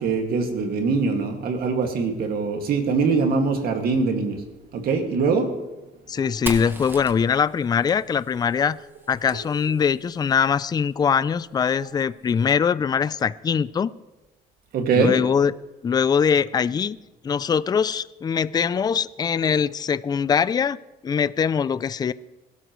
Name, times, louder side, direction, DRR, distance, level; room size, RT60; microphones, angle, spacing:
voice 1, 0.0-4.4 4.7-5.5 6.1-6.3 9.3-9.4 14.7-15.2 19.4-19.5, right 4 dB, 60° right, 4 dB, 2.2 m, -23 dB
voice 2, 6.1-8.8 9.1-13.9 15.0-15.5 15.8-17.0 17.2-20.8 21.0-22.1, left 7 dB, 25° left, 17 dB, 0.4 m, -22 dB
Fire, 6.5-10.1, right 1 dB, 10° right, 1.4 m, -38 dB
21.5 x 12.5 x 3.2 m, 1.1 s
cardioid pair, 110°, 17 cm